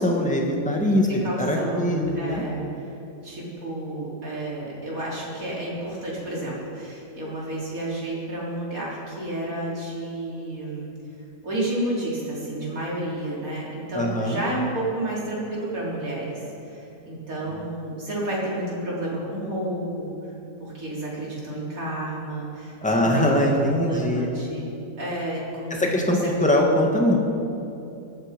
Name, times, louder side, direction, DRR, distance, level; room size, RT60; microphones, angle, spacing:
voice 1, 0.0-2.4 13.9-14.4 22.8-24.3 25.7-27.2, left 1 dB, 5° left, 0 dB, 1.8 m, -22 dB
voice 2, 1.0-2.9 3.2-10.9 11.4-20.1 20.6-24.6 25.0-26.3, right 1 dB, 55° right, -5 dB, 4.5 m, -31 dB
19.5 x 14.0 x 5.3 m, 2.8 s
omnidirectional pair, 1.7 m